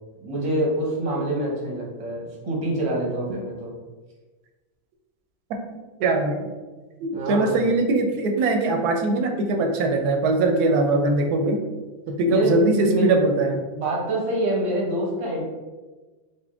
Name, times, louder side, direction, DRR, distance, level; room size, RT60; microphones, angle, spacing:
voice 1, 0.2-3.7 7.1-7.6 12.3-12.6 12.9-13.1 13.7-15.4, right 1 dB, 30° right, -3 dB, 0.7 m, -26 dB
voice 2, 6.0-6.5 7.0-11.6 12.1-13.6, right 2 dB, 90° right, 4 dB, 1.1 m, -21 dB
4.1 x 2.1 x 3.5 m, 1.3 s
omnidirectional pair, 1.6 m